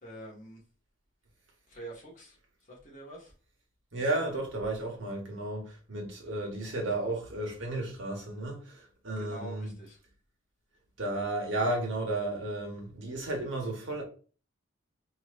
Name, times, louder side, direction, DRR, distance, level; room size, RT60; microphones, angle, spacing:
voice 1, 0.0-0.6 1.7-2.4 2.7-3.3 9.2-10.0, right 2 dB, 40° left, 1.5 m, -45 dB
voice 2, 3.9-9.7 11.0-14.0, right 2 dB, 70° right, 1.4 m, -33 dB
4.2 x 3.0 x 2.5 m
head